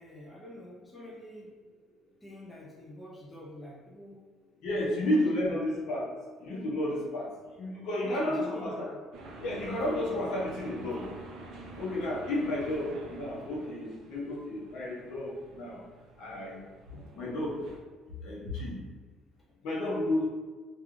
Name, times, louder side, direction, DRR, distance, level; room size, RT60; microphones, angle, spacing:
voice 1, 0.0-1.5 2.2-4.2 4.7-5.6 7.9-9.0, left 1 dB, 10° left, -5 dB, 0.4 m, -47 dB
voice 2, 4.6-6.1 6.4-8.9 9.4-11.1 11.8-15.8 16.2-16.6 17.2-17.6 18.2-18.8 19.6-20.3, left 1 dB, 60° left, -4 dB, 0.7 m, -32 dB
sound 1, 9.1-17.8, right 2 dB, 55° right, 0.4 m, -48 dB
3.1 x 2.3 x 2.4 m, 1.4 s
cardioid pair, 165°, 0 cm